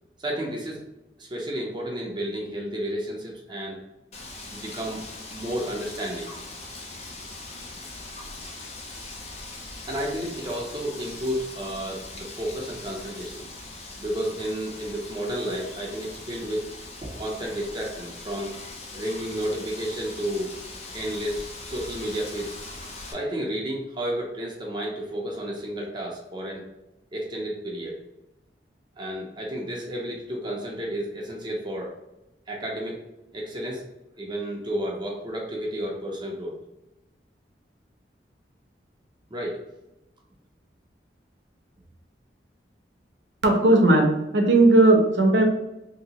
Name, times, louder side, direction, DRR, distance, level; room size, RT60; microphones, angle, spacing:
voice 1, 0.2-0.8 1.2-3.8 4.5-5.0 5.3-6.3 9.9-13.5 14.0-16.7 17.0-18.6 18.9-20.5 20.9-22.6 23.0-26.6 27.1-28.0 29.0-31.9 32.5-33.0 33.3-33.8 34.2-36.6 39.3-39.7, equal, 25° right, -2 dB, 0.6 m, -31 dB
Wind, 4.1-23.1, left 2 dB, 40° left, 0.6 m, -41 dB
voice 2, 43.4-45.4, right 2 dB, 80° right, 2 dB, 0.7 m, -17 dB
2.9 x 2.8 x 2.8 m, 0.94 s
head